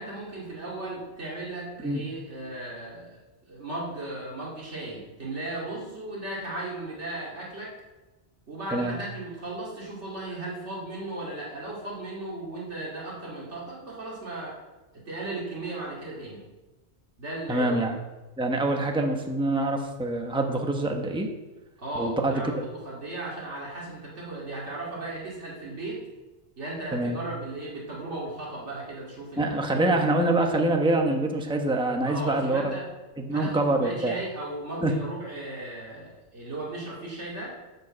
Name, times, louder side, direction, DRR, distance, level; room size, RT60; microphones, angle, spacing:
voice 1, 0.0-3.2 3.5-7.7 8.5-14.6 14.9-16.4 17.2-17.8 21.8-26.0 26.6-29.6 32.1-32.9 33.3-37.6, right 2 dB, 85° right, -4 dB, 2.6 m, -36 dB
voice 2, 17.5-18.0 18.4-21.3 22.0-22.4 26.9-27.2 29.4-32.7 33.2-34.1 34.8-34.9, right 2 dB, 5° right, 3 dB, 0.9 m, -25 dB
11.0 x 5.4 x 7.4 m, 1.2 s
omnidirectional pair, 1.1 m